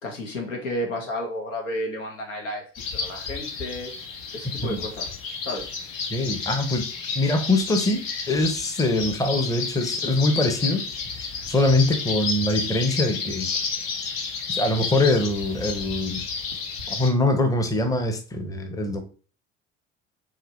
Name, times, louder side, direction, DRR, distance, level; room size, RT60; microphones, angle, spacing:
voice 1, 0.0-2.6 2.9-3.9 4.3-5.2 5.4-5.7, left 1 dB, 80° left, 2 dB, 1.4 m, -32 dB
sound 1, 2.7-17.1, left 5 dB, 60° left, 1.2 m, -31 dB
voice 2, 6.1-6.9 7.1-10.8 11.2-13.5 14.5-16.2 16.9-19.0, left 2 dB, 10° left, 6 dB, 0.8 m, -23 dB
4.8 x 3.1 x 3.1 m, 0.38 s
hypercardioid pair, 65°, 38 cm